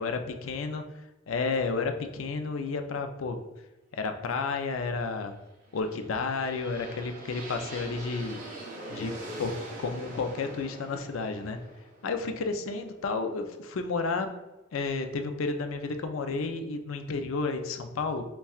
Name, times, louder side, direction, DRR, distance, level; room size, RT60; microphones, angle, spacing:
voice 1, 0.0-3.4 3.9-5.3 5.7-8.4 8.9-9.5 9.8-11.6 12.0-14.3 14.7-18.2, left 4 dB, 75° left, 7 dB, 0.4 m, -31 dB
sound 1, 5.7-13.6, right 2 dB, 40° right, 0.8 m, -43 dB
5.4 x 2.3 x 2.4 m, 1.0 s
head